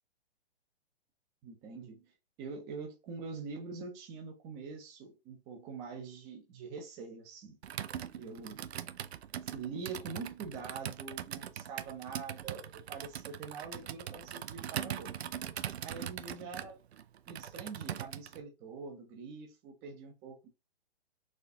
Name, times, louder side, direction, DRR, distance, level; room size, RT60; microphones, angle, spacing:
voice 1, 1.4-2.1 2.4-7.6 8.1-8.6 9.4-15.1 15.8-16.8 17.3-20.5, right 5 dB, 15° right, 0.4 m, -44 dB
Computer keyboard, 7.6-18.4, right 10 dB, 85° right, 0.5 m, -41 dB
4.1 x 2.2 x 2.7 m
hypercardioid pair, 140°, 31 cm